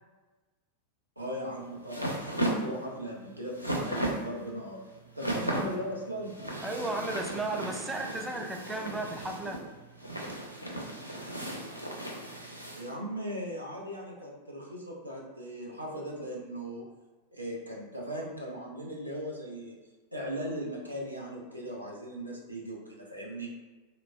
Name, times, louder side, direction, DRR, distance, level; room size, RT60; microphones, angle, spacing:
sound 1, 1.2-12.9, right 1 dB, 90° left, 0.4 m, -36 dB
voice 1, 1.2-4.8 5.2-6.3 12.7-16.8 17.3-19.8 20.1-23.5, equal, 85° right, -3 dB, 0.5 m, -38 dB
voice 2, 6.6-9.6, right 2 dB, 10° right, 3 dB, 0.3 m, -34 dB
3.1 x 2.0 x 2.3 m, 1.2 s
figure-of-eight pair, 90°, 0 cm